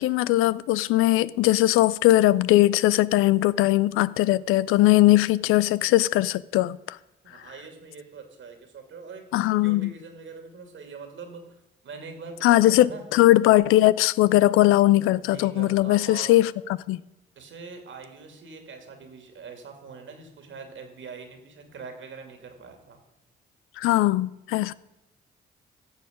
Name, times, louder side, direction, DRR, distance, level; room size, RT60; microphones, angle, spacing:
voice 1, 0.0-7.0 9.3-9.9 12.4-16.5 16.9-17.0 23.8-24.7, left 16 dB, 80° left, 0.4 m, -20 dB
voice 2, 7.2-13.0 15.2-16.4 17.4-23.0, right 4 dB, 65° right, 2.4 m, -43 dB
15.0 x 7.1 x 5.1 m
supercardioid pair, 50°, 21 cm